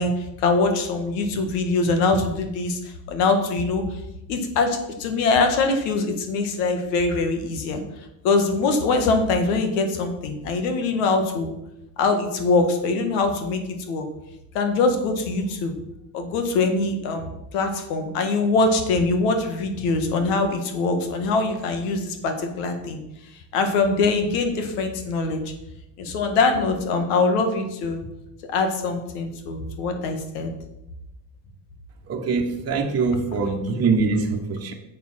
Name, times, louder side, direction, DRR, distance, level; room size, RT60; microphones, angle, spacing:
voice 1, 0.0-4.0 4.3-7.8 8.2-11.5 12.0-13.6 13.9-14.0 14.5-15.7 16.1-23.0 23.5-25.4 26.0-28.0 28.5-30.5, left 3 dB, 85° left, 6 dB, 1.8 m, -23 dB
voice 2, 32.1-34.7, right 4 dB, 30° right, 0 dB, 1.3 m, -23 dB
7.4 x 7.1 x 5.8 m, 0.89 s
supercardioid pair, 100°, 48 cm